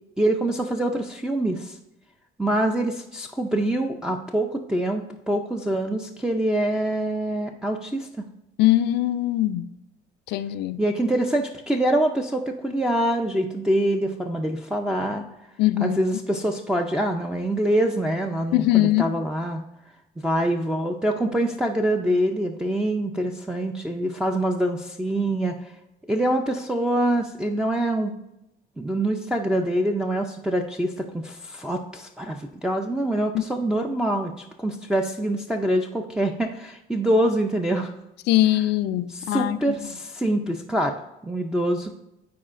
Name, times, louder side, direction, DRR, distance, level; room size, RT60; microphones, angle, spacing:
voice 1, 0.2-1.8 2.4-8.2 10.8-15.2 15.8-19.6 20.2-25.6 26.1-28.1 28.8-34.3 34.6-37.9 39.3-41.9, right 1 dB, 5° right, 0.5 m, -25 dB
voice 2, 8.6-9.7 10.3-10.8 15.6-16.0 18.5-19.1 33.3-33.4 38.3-39.9, left 15 dB, 80° left, 0.4 m, -21 dB
13.0 x 4.7 x 2.5 m
cardioid pair, 110°, 17 cm